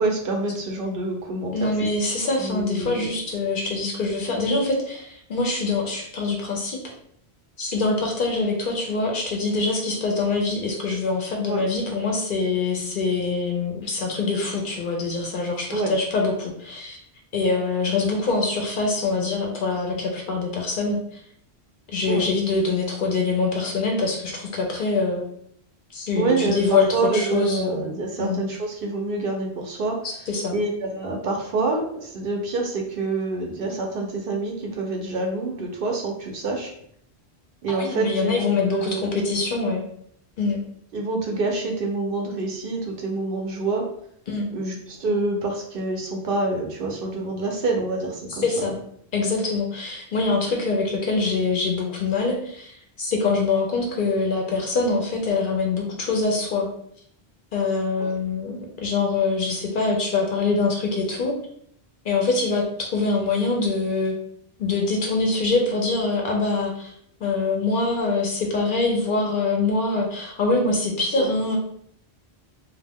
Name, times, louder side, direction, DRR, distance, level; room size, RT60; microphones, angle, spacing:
voice 1, 0.0-1.7 2.4-3.2 11.5-11.7 15.7-15.9 22.1-22.3 26.2-36.7 37.6-39.2 40.9-43.8 44.5-48.7 58.0-58.1 71.2-71.3, right 3 dB, 65° right, 1 dB, 0.7 m, -27 dB
voice 2, 1.5-6.8 7.6-17.0 17.3-21.2 21.9-25.3 25.9-27.9 28.2-28.4 30.3-30.6 37.7-39.8 40.4-40.6 44.3-44.4 48.3-48.8 49.1-56.7 57.5-61.3 62.0-64.1 64.6-66.9 67.2-71.6, left 3 dB, 60° left, 0 dB, 0.6 m, -24 dB
2.4 x 2.1 x 3.4 m, 0.68 s
omnidirectional pair, 1.1 m